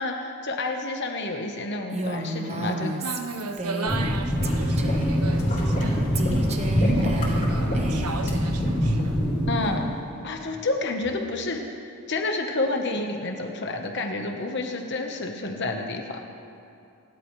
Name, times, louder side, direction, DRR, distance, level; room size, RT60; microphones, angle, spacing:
voice 1, 0.0-2.9 9.5-9.9 10.2-11.6 12.1-16.2, left 2 dB, 50° left, 3 dB, 1.1 m, -29 dB
Female speech woman speaking, 1.9-4.2 4.4-5.2 6.1-8.3, right 1 dB, 30° right, 0.9 m, -33 dB
voice 2, 3.0-6.1 6.9-9.2, right 3 dB, 85° right, 5 dB, 1.2 m, -35 dB
sound 1, 3.9-9.7, equal, 5° right, 3.9 m, -25 dB
sound 2, 4.4-9.9 10.5-10.6 11.0-11.1, equal, 35° left, 3.8 m, -29 dB
27.0 x 12.0 x 3.2 m, 2.5 s
head